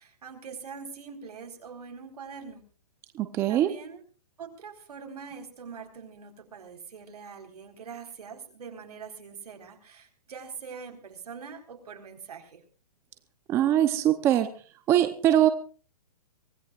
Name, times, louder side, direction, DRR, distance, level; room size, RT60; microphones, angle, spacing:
voice 1, 0.0-2.6 3.5-4.0 4.4-12.6, right 6 dB, 75° right, 4 dB, 4.4 m, -43 dB
voice 2, 3.1-3.8 13.5-14.5 14.9-15.5, right 11 dB, 15° right, 9 dB, 0.7 m, -22 dB
24.0 x 17.0 x 2.4 m, 0.37 s
hypercardioid pair, 165°, 20 cm